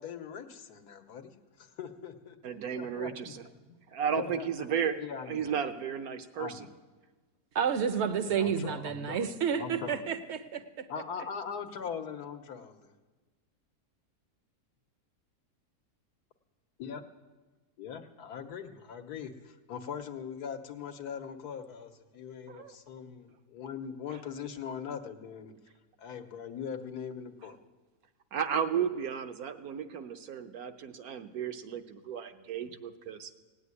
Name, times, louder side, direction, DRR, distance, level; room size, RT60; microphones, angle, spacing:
voice 1, 0.0-1.3 1.6-3.3 4.2-4.7 5.0-5.5 6.4-6.7 8.2-9.3 9.6-10.2 10.9-12.9 16.8-17.0 17.8-25.5 26.0-27.6, left 7 dB, 75° left, 7 dB, 1.5 m, -41 dB
voice 2, 2.4-3.4 3.9-5.0 5.3-6.7 22.5-22.8 28.3-33.3, right 7 dB, 70° right, 8 dB, 1.3 m, -34 dB
voice 3, 7.5-10.9, right 7 dB, 55° right, 10 dB, 0.9 m, -30 dB
17.5 x 8.0 x 9.7 m, 1.3 s
omnidirectional pair, 1.7 m